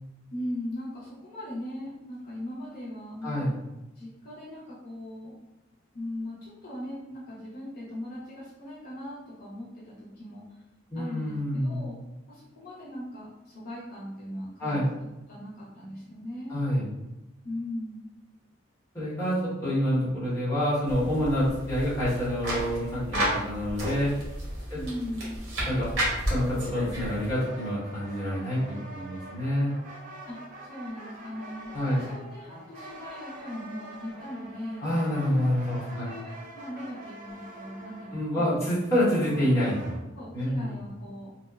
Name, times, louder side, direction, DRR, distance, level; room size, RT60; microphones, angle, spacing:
voice 1, 0.3-3.5 3.9-5.4 5.9-10.6 10.9-12.0 12.3-14.8 15.3-16.5 17.4-18.0 24.7-25.4 30.3-34.9 35.7-38.5 40.1-41.3, left 1 dB, 50° left, -8 dB, 0.6 m, -39 dB
voice 2, 3.2-3.5 10.9-11.8 14.6-14.9 16.5-16.8 18.9-24.2 24.7-24.8 25.7-25.9 26.3-29.8 31.7-32.0 34.8-36.1 38.1-40.1 40.3-40.7, equal, 15° left, -10 dB, 1.0 m, -27 dB
sound 1, 20.9-27.3, equal, 65° right, 1.0 m, -32 dB
sound 2, 26.8-40.0, right 1 dB, 40° right, 0.4 m, -45 dB
2.8 x 2.1 x 2.3 m, 0.98 s
head